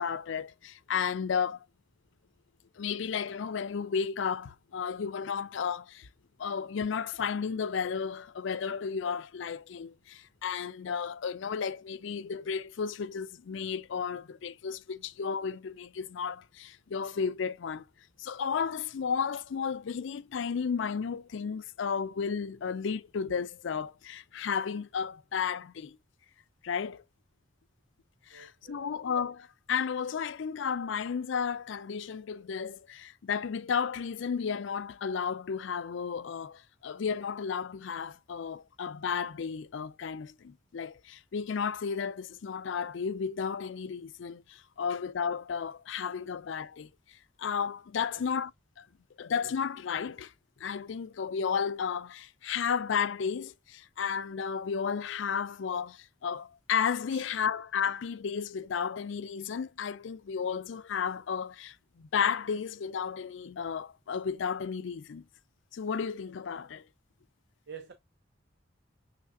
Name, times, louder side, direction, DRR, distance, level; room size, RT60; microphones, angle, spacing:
voice 1, 0.0-1.6 2.8-6.1 6.4-17.8 18.2-26.0 26.6-27.0 28.3-48.5 48.8-48.9 49.2-50.3 50.6-65.2 65.7-66.9, left 6 dB, 70° left, 0.4 m, -33 dB
voice 2, 28.3-29.0 48.1-48.3 57.1-57.3 67.7-67.9, right 6 dB, 65° right, 0.6 m, -48 dB
6.5 x 3.3 x 2.4 m
head